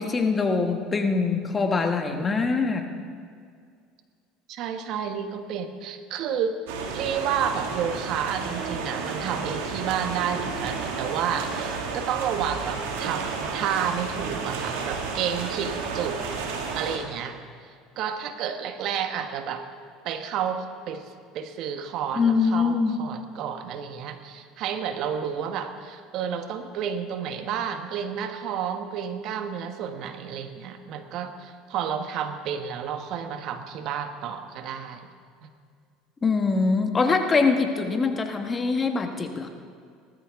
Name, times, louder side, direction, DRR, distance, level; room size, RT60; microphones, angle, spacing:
voice 1, 0.0-2.9 22.1-23.0 36.2-39.5, left 4 dB, 25° left, 5 dB, 1.4 m, -23 dB
voice 2, 4.5-6.6 6.9-16.2 16.7-17.4 18.0-19.7 20.0-35.1 35.4-35.5, right 8 dB, 60° right, 8 dB, 1.1 m, -31 dB
sound 1, 6.7-17.0, right 5 dB, 85° right, 2.0 m, -32 dB
19.0 x 13.0 x 3.6 m, 2.2 s
supercardioid pair, 95°, 0 cm